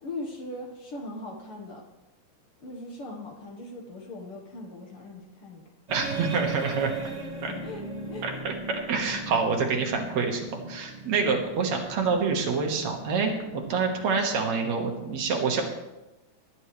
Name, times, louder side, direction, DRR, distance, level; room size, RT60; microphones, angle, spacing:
voice 1, 0.0-1.8 2.6-5.6 7.4-7.8 8.1-8.3 11.3-11.5, left 2 dB, 55° left, 1 dB, 2.0 m, -39 dB
sound 1, 5.9-14.8, right 2 dB, 20° right, 1.2 m, -39 dB
voice 2, 5.9-7.0 7.4-7.5 8.2-10.4 10.7-15.6, right 5 dB, 70° right, 2 dB, 2.7 m, -27 dB
19.0 x 9.9 x 3.3 m, 1.0 s
omnidirectional pair, 3.3 m